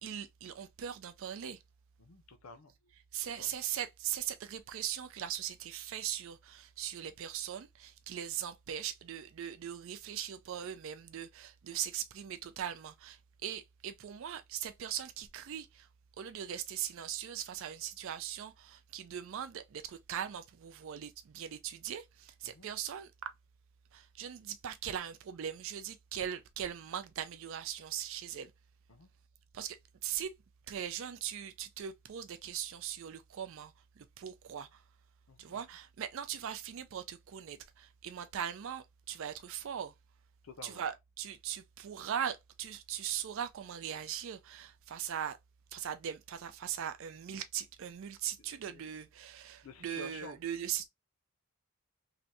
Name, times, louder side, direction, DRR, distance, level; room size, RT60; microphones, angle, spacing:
voice 1, 0.0-1.6 3.1-15.9 16.2-23.3 23.9-28.5 29.5-30.3 30.7-34.8 35.4-39.9 40.6-45.4 45.7-50.8, right 9 dB, 60° right, 0.4 m, -40 dB
voice 2, 2.0-2.7 3.2-3.5 22.4-22.7 28.9-29.1 35.3-35.6 40.4-40.8 48.7-48.9 49.6-50.4, left 2 dB, 70° left, 0.6 m, -50 dB
3.3 x 2.6 x 2.5 m
head